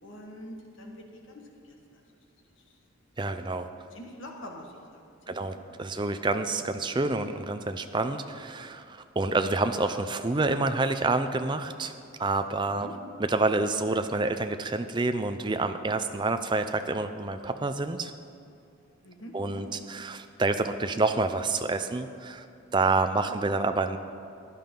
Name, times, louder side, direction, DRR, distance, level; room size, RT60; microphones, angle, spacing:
voice 1, 0.0-2.0 3.9-5.0 5.3-5.6 5.9-6.1 12.7-12.9 19.0-19.7 23.3-23.4, equal, 65° left, 1 dB, 1.7 m, -45 dB
voice 2, 3.2-3.7 5.3-11.9 12.2-12.9 13.2-18.1 19.3-22.4 22.7-24.0, right 3 dB, 20° right, 8 dB, 0.5 m, -28 dB
15.5 x 10.5 x 3.8 m, 2.6 s
head